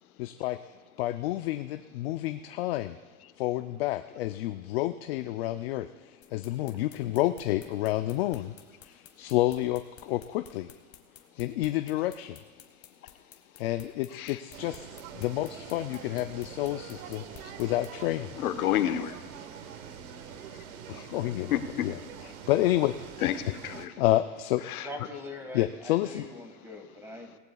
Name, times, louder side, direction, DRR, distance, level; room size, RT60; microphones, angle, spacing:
voice 1, 0.2-0.6 1.0-3.0 3.4-8.5 8.8-10.7 11.4-12.4 13.6-14.9 15.1-18.4 21.1-21.9 22.5-23.4 24.0-24.6 25.5-26.3, left 15 dB, 45° left, 9 dB, 0.5 m, -29 dB
sound 1, 6.2-17.9, left 10 dB, 25° left, 1.3 m, -52 dB
sound 2, 14.5-23.9, right 8 dB, 75° right, 1.3 m, -44 dB
voice 2, 18.4-19.4 20.5-21.1 21.5-21.9 23.2-23.9 24.7-24.9 27.1-27.4, left 11 dB, 85° left, 9 dB, 1.2 m, -31 dB
voice 3, 24.8-27.4, left 2 dB, 5° right, 4 dB, 1.6 m, -42 dB
25.0 x 18.0 x 2.3 m, 1.5 s
supercardioid pair, 150°, 43 cm